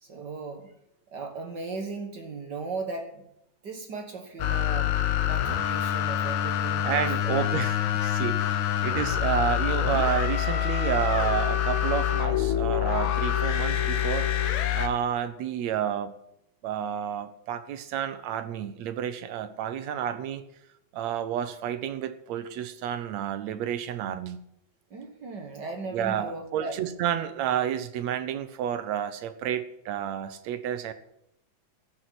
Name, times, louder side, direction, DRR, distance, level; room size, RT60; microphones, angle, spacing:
voice 1, 0.0-0.7 1.1-3.2 3.6-4.9 5.2-7.4 24.9-26.8, right 3 dB, 50° right, 5 dB, 1.4 m, -37 dB
sound 1, 4.4-14.9, left 11 dB, 75° left, 2.4 m, -26 dB
voice 2, 6.8-16.1 16.6-20.4 20.9-24.4 25.9-30.9, right 9 dB, 70° right, 11 dB, 2.1 m, -30 dB
14.0 x 6.7 x 9.7 m, 0.78 s
omnidirectional pair, 3.4 m